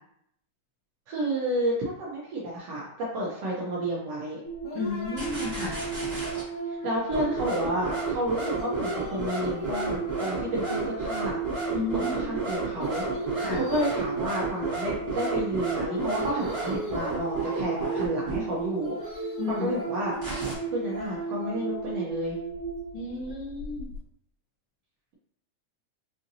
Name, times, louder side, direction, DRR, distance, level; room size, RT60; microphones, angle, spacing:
voice 1, 1.1-4.4 6.7-11.4 11.9-13.0 13.5-20.1 20.7-22.4, right 1 dB, 75° right, -4 dB, 1.4 m, -31 dB
sound 1, 4.4-24.0, right 3 dB, 50° left, 1.7 m, -34 dB
voice 2, 4.7-5.8 11.7-12.4 13.4-13.6 19.4-19.7 22.9-23.9, left 4 dB, 75° left, -6 dB, 1.5 m, -33 dB
sound 2, 5.1-6.4 7.1-18.4 20.1-20.5, right 3 dB, 30° right, 0.6 m, -32 dB
5.5 x 2.6 x 2.6 m, 0.75 s
omnidirectional pair, 3.5 m